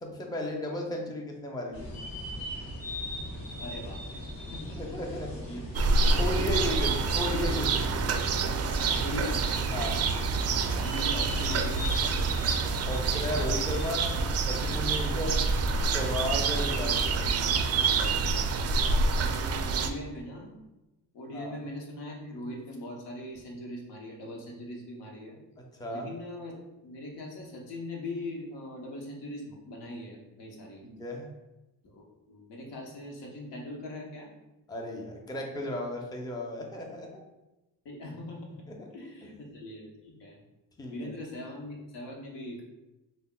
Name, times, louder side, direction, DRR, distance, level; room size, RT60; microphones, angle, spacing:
voice 1, 0.0-1.9 4.8-5.6 6.2-8.0 9.7-10.0 12.9-14.1 14.5-15.4 15.9-17.2 21.3-21.5 25.6-26.1 30.8-31.3 34.7-37.2 38.7-38.9 40.8-41.1, left 1 dB, 10° left, 0 dB, 0.7 m, -34 dB
sound 1, 1.7-18.3, left 1 dB, 50° left, 1.4 m, -40 dB
voice 2, 3.6-4.8 5.5-7.0 8.8-9.5 10.8-11.9 19.1-20.5 21.1-25.4 25.9-26.6 26.8-30.8 31.8-34.3 37.8-38.6 38.9-40.4 40.9-42.6, left 1 dB, 70° left, -1 dB, 1.0 m, -41 dB
sound 2, 5.7-19.9, right 4 dB, 40° right, 0.4 m, -27 dB
5.3 x 2.1 x 2.3 m, 1.0 s
supercardioid pair, 60°, 43 cm